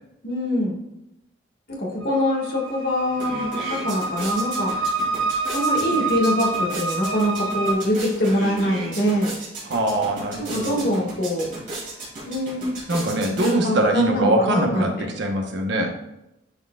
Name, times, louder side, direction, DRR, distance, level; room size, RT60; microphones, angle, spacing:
voice 1, 0.2-0.8 1.7-4.9 5.5-9.3 10.4-11.5 12.3-12.8 13.3-15.1, equal, 50° left, -2 dB, 1.7 m, -24 dB
sound 1, 2.0-7.7, right 3 dB, 80° right, 0.9 m, -27 dB
sound 2, 2.6-2.7 3.0-13.9, right 2 dB, 40° right, 2.3 m, -35 dB
voice 2, 9.6-10.8 12.9-15.9, right 1 dB, 60° right, 3 dB, 1.1 m, -23 dB
9.6 x 4.6 x 2.4 m, 0.86 s
head